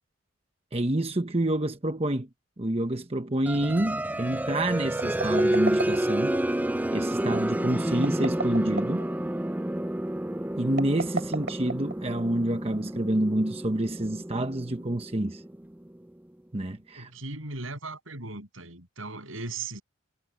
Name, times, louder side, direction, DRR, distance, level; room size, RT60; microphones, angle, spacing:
voice 1, 0.7-2.3 2.6-6.4 6.9-9.1 10.6-15.4 16.5-17.1, right 1 dB, 30° right, 1.0 m, -28 dB
sound 1, 3.5-16.0, right 1 dB, 10° right, 0.4 m, -30 dB
sound 2, 5.0-6.4 7.9-9.1 10.7-12.2, right 3 dB, 60° right, 2.8 m, -33 dB
voice 2, 17.0-19.8, right 3 dB, 85° right, 7.7 m, -38 dB
head